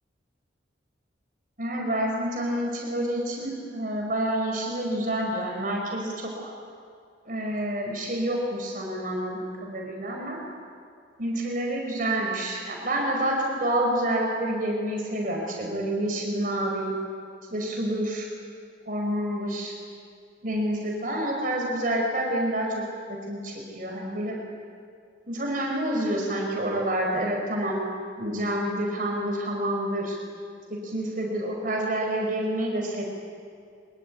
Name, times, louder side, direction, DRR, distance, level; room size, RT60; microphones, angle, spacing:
voice 1, 1.6-6.5 7.3-10.4 11.2-16.9 17.5-18.3 18.9-19.7 20.4-22.8 23.1-24.4 25.3-27.8 28.2-30.2 30.7-33.0, right 1 dB, 45° right, 0 dB, 5.2 m, -28 dB
24.5 x 24.0 x 9.6 m, 2.3 s
head